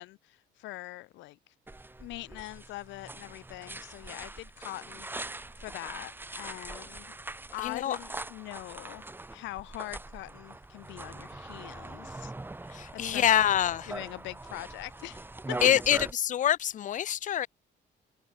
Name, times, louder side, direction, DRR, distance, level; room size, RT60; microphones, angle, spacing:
voice 1, 0.0-1.4 2.0-5.1 5.6-7.1 7.5-9.1 9.3-12.3 12.9-13.6 13.9-15.6, left 18 dB, 85° left, 1.2 m, -42 dB
sound 1, 1.7-16.1, right 2 dB, 10° right, 0.9 m, -42 dB
voice 2, 7.6-8.0 12.7-13.9 15.6-16.0 16.2-17.5, left 10 dB, 45° left, 0.4 m, -25 dB
cardioid pair, 85°, 19 cm